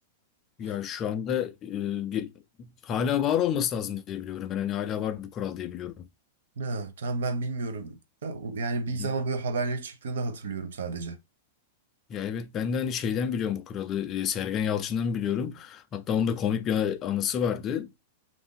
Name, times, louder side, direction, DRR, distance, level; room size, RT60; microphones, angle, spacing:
voice 1, 0.6-2.3 2.6-6.1 9.0-9.1 12.1-17.9, left 8 dB, 25° left, 0.3 m, -29 dB
voice 2, 6.6-11.2, right 3 dB, 90° right, 0.6 m, -31 dB
2.5 x 2.4 x 3.6 m
supercardioid pair, 165°, 0 cm